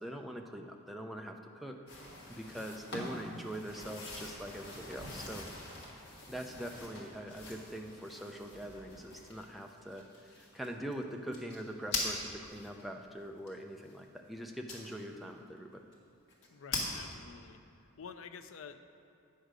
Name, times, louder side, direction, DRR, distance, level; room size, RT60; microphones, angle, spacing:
voice 1, 0.0-2.0 2.3-5.5 6.3-15.8, equal, ahead, 2 dB, 0.5 m, -43 dB
sound 1, 1.9-12.8 13.5-13.6 14.7-15.2 15.6-15.7 15.9-16.0 16.3-16.9, left 2 dB, 55° left, 1.6 m, -42 dB
voice 2, 2.5-2.9 16.5-17.6 18.0-18.8, left 6 dB, 75° left, 9 dB, 0.5 m, -49 dB
9.2 x 6.5 x 5.0 m, 2.7 s
head